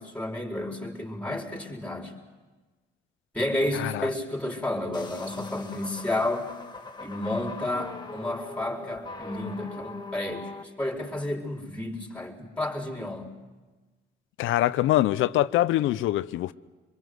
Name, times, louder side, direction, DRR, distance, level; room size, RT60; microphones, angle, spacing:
voice 1, 0.0-2.1 3.3-6.5 7.0-10.5 10.8-13.3, left 1 dB, 5° left, 4.4 m, -31 dB
sound 1, 4.9-10.6, left 3 dB, 20° left, 1.8 m, -41 dB
voice 2, 14.4-16.5, left 14 dB, 90° left, 0.7 m, -24 dB
25.0 x 22.0 x 7.9 m
cardioid pair, 90°, 20 cm